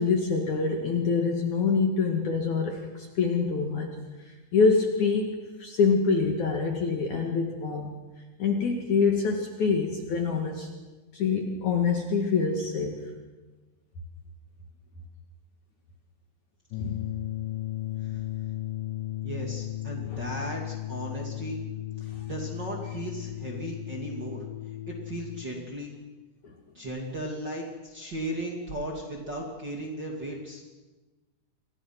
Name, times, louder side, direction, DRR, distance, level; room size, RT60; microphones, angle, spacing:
voice 1, 0.0-3.9 4.5-5.3 5.6-8.0 8.4-10.7 11.1-13.1 16.8-17.0 20.1-20.2, left 5 dB, 50° left, 2 dB, 3.3 m, -25 dB
sound 1, 16.7-25.5, left 15 dB, 70° left, 2.2 m, -35 dB
voice 2, 19.2-21.6 22.0-24.4 24.9-25.9 26.7-30.6, right 1 dB, 30° right, -1 dB, 2.9 m, -36 dB
29.0 x 23.5 x 6.1 m, 1.2 s
omnidirectional pair, 4.6 m